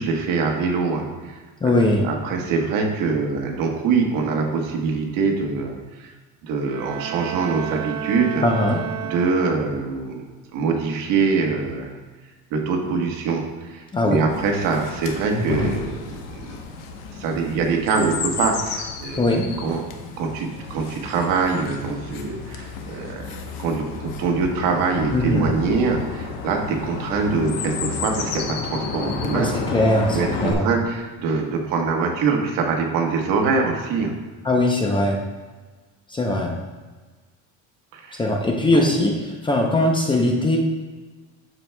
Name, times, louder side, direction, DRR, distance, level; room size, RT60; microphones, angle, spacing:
voice 1, 0.0-1.4 1.6-6.1 6.4-8.5 9.1-10.2 10.5-12.0 12.5-16.6 17.2-19.8 20.2-23.2 23.6-29.5 30.1-34.1 37.9-38.2 38.7-38.9, right 4 dB, 70° right, 2 dB, 1.2 m, -24 dB
voice 2, 1.6-2.1 8.4-8.8 13.9-14.3 15.3-15.7 19.2-19.5 25.1-25.6 29.3-30.7 34.4-35.2 36.1-36.6 38.2-40.6, left 1 dB, 15° left, 1 dB, 0.6 m, -21 dB
Bowed string instrument, 6.6-10.0, right 11 dB, 90° right, 0.5 m, -32 dB
Chirp tweet, 14.3-30.5, left 5 dB, 75° left, 1.0 m, -32 dB
12.5 x 4.6 x 2.2 m, 1.3 s
cardioid pair, 150°, 34 cm